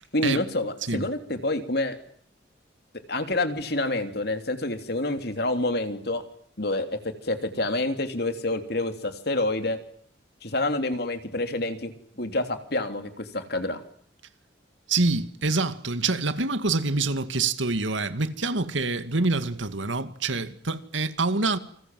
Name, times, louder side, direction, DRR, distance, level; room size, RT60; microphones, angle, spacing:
voice 1, 0.1-2.0 3.1-6.2 6.6-9.8 10.4-13.8, left 2 dB, 55° left, 3.4 m, -28 dB
voice 2, 14.9-21.6, right 3 dB, 85° right, 2.2 m, -26 dB
29.0 x 26.5 x 7.7 m
head